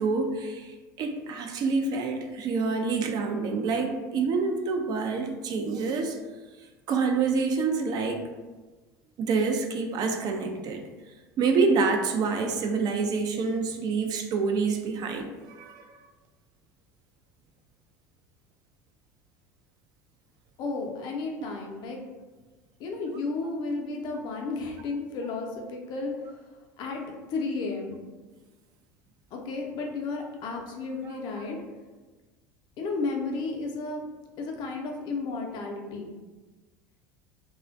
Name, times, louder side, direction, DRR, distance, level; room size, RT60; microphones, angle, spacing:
voice 1, 0.0-6.2 6.9-8.2 9.2-10.8 11.4-15.9 21.4-21.5 31.0-31.4, right 4 dB, 45° right, 4 dB, 0.3 m, -27 dB
voice 2, 20.6-22.0 22.8-26.1 26.8-27.0 27.3-28.0 29.3-31.6 32.8-34.0 34.4-36.1, left 3 dB, 50° left, 1 dB, 0.5 m, -33 dB
2.4 x 2.1 x 2.4 m, 1.3 s
hypercardioid pair, 75°, 10 cm